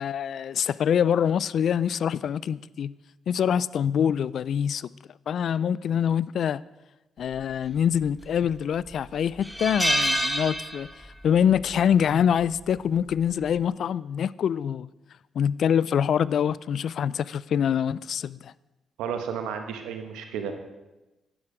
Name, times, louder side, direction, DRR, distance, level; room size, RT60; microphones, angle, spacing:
voice 1, 0.0-2.9 3.3-4.9 5.3-6.6 7.2-10.9 11.2-14.9 15.4-18.5, left 8 dB, 65° left, 0.3 m, -25 dB
sound 1, 8.0-8.5 8.9-9.0 9.4-11.2 11.5-11.7 13.0-13.3, equal, ahead, 1.2 m, -27 dB
voice 2, 19.0-20.5, right 7 dB, 90° right, 1.2 m, -32 dB
11.0 x 9.8 x 5.0 m
supercardioid pair, 65°, 0 cm